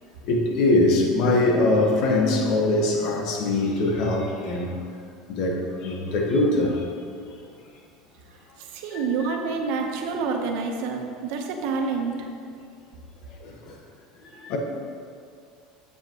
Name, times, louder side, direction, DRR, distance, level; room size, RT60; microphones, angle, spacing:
voice 1, 0.2-4.7 5.3-6.9 8.9-9.4 13.4-13.7 14.2-14.6, left 2 dB, 55° left, 1 dB, 1.2 m, -23 dB
voice 2, 8.3-12.3, right 4 dB, 70° right, 3 dB, 1.0 m, -28 dB
8.3 x 8.0 x 3.0 m, 2.3 s
cardioid pair, 150°, 0 cm